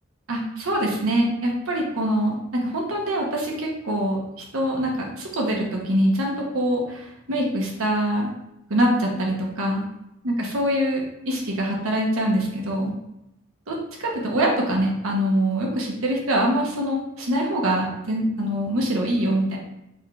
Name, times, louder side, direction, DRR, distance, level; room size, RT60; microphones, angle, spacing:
voice 1, 0.3-4.2 4.5-8.3 8.7-9.8 10.2-12.9 13.7-19.6, right 1 dB, 85° right, -1 dB, 0.9 m, -24 dB
4.1 x 3.2 x 2.4 m, 0.87 s
head